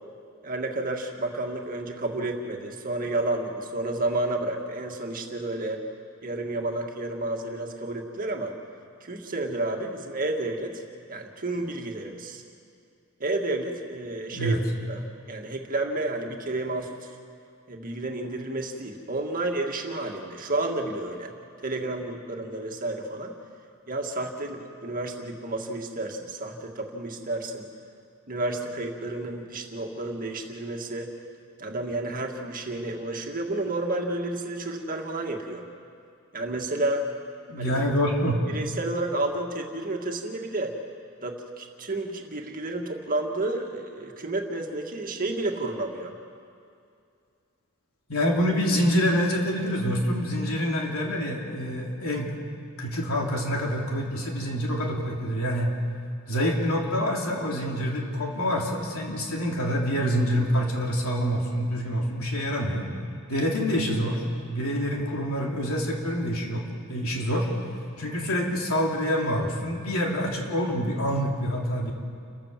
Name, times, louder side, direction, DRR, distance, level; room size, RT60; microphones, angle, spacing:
voice 1, 0.4-5.8 6.2-8.6 9.0-10.8 11.1-12.4 13.2-14.6 14.9-17.1 17.7-21.3 21.6-23.3 23.9-27.7 28.3-31.1 31.6-35.7 36.3-37.1 37.6-37.7 38.5-40.8 41.2-46.2, right 2 dB, 40° right, 2 dB, 1.9 m, -31 dB
voice 2, 37.5-38.4 48.1-52.3 52.8-55.7 56.3-62.9 63.3-66.6 66.9-67.5 68.0-71.9, equal, 70° left, -1 dB, 3.3 m, -26 dB
29.5 x 13.0 x 7.5 m, 2.4 s
head